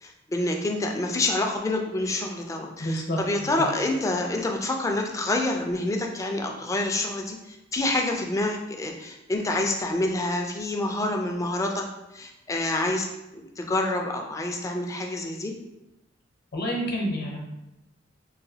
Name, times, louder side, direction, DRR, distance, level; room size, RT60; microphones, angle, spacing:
voice 1, 0.0-11.8 12.1-15.5, left 2 dB, 15° left, 2 dB, 0.3 m, -27 dB
voice 2, 2.8-3.7 16.5-17.4, equal, 55° left, -1 dB, 0.8 m, -29 dB
3.9 x 2.3 x 2.7 m, 0.94 s
head